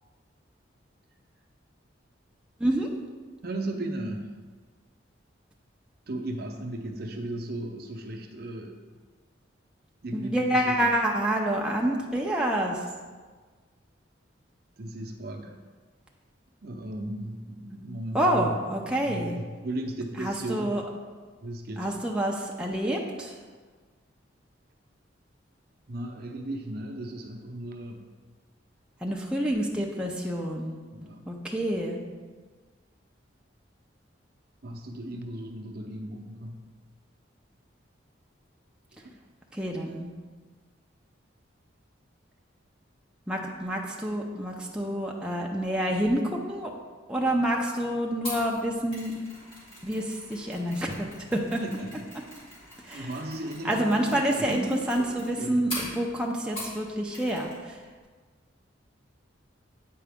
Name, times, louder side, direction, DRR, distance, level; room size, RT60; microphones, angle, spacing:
voice 1, 3.4-4.3 6.1-8.8 10.0-10.9 14.8-15.5 16.6-18.6 19.0-20.8 21.4-21.9 25.9-28.1 30.9-31.3 34.6-36.7 51.6-52.1 52.9-55.8, right 1 dB, 50° right, 3 dB, 0.7 m, -36 dB
voice 2, 10.1-12.8 18.1-19.4 20.2-20.8 21.8-23.4 29.0-30.8 31.3-32.0 39.5-40.1 43.3-46.7 47.1-49.1 49.8-51.6 52.8-53.1 53.6-57.8, right 1 dB, 5° right, -2 dB, 0.5 m, -28 dB
Mechanisms, 48.2-56.8 57.1-57.6 57.8-58.0, equal, 30° left, 2.2 m, -42 dB
8.5 x 4.8 x 3.5 m, 1.4 s
head